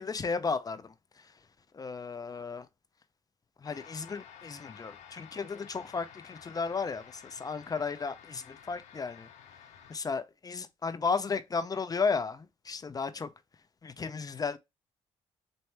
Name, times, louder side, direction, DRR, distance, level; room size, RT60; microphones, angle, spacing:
voice 1, 0.0-1.3 1.7-2.7 3.6-9.3 9.9-13.3 13.8-14.6, left 5 dB, 30° left, 0.6 m, -34 dB
sound 1, 3.6-10.0, left 8 dB, 80° left, 0.8 m, -52 dB
4.4 x 2.7 x 3.3 m
cardioid pair, 75°, 12 cm